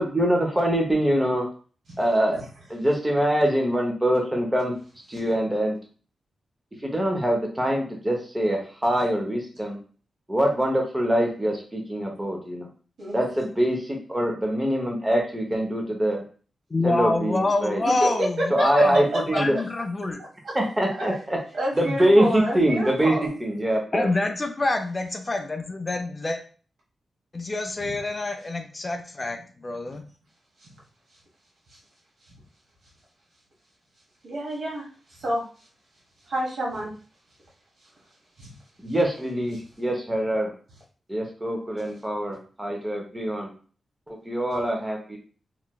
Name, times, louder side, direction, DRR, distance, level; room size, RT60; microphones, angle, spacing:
voice 1, 0.0-1.5 2.0-2.4 2.7-4.7 5.1-5.8 6.8-9.8 10.3-12.7 13.1-16.2 16.8-17.8 18.5-19.6 20.5-21.4 21.7-23.1 23.4-24.1 38.8-40.5 41.1-43.5 44.1-45.2, right 1 dB, 15° right, 1 dB, 0.7 m, -24 dB
voice 2, 16.7-19.0 19.3-20.2 23.9-26.4 27.3-30.0, left 2 dB, 25° left, 5 dB, 0.4 m, -27 dB
voice 3, 17.8-18.4 20.4-20.5 20.9-21.2 21.5-23.3 27.8-27.9 34.2-34.9 35.2-35.4 36.3-36.9 38.4-38.5, right 1 dB, 75° right, -3 dB, 1.3 m, -29 dB
3.1 x 2.9 x 2.3 m, 0.40 s
wide cardioid pair, 120°, 0 cm